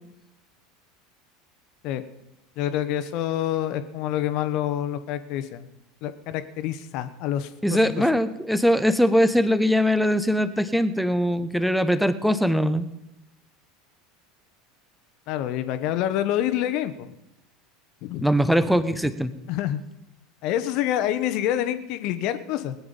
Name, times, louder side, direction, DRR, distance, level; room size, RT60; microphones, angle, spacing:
voice 1, 2.6-5.7 6.0-8.0 15.3-17.1 18.0-18.3 19.5-19.8 20.4-22.7, left 11 dB, 50° left, 12 dB, 1.2 m, -27 dB
voice 2, 7.6-12.9 18.2-19.3, equal, ahead, 12 dB, 1.1 m, -21 dB
20.0 x 9.9 x 5.4 m, 0.91 s
figure-of-eight pair, 75°, 0 cm